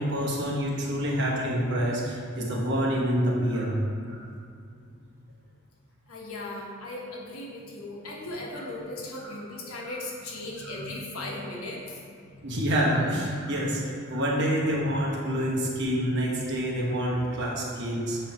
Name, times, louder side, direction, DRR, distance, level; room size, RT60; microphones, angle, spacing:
voice 1, 0.0-3.8 4.1-4.3 9.2-9.3 10.6-10.9 12.4-18.2, equal, 55° right, -3 dB, 1.2 m, -27 dB
voice 2, 6.1-12.0, left 2 dB, 90° left, -2 dB, 1.2 m, -37 dB
8.1 x 3.1 x 4.6 m, 2.3 s
head